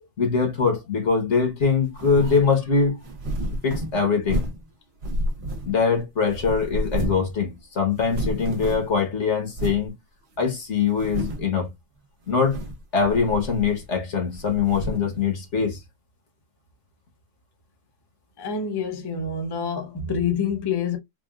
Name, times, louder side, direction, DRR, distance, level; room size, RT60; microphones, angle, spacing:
voice 1, 0.0-3.0 3.6-4.4 5.7-9.9 10.4-11.7 12.3-12.6 12.9-15.8, left 5 dB, 70° left, 1.5 m, -23 dB
sound 1, 1.9-2.5 3.0-4.7 5.0-6.0 6.3-7.3 7.6-7.7 7.9-9.0 9.5-9.9 10.4-10.5 10.9-11.5 12.3-12.8 13.1-14.0 14.3-15.1, equal, 60° right, 1.1 m, -30 dB
voice 2, 18.4-21.0, left 6 dB, 25° left, 0.6 m, -27 dB
3.5 x 2.4 x 2.4 m
omnidirectional pair, 1.2 m